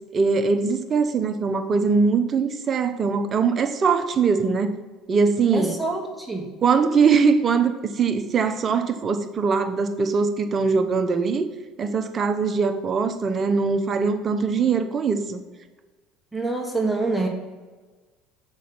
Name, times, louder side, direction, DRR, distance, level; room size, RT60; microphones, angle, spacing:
voice 1, 0.1-4.8 5.1-5.8 6.6-11.5 11.8-15.4, right 5 dB, 40° right, 7 dB, 0.8 m, -22 dB
voice 2, 5.5-6.5 16.3-17.3, right 3 dB, 5° right, 1 dB, 1.4 m, -26 dB
6.3 x 5.2 x 5.9 m, 1.3 s
hypercardioid pair, 70°, 0 cm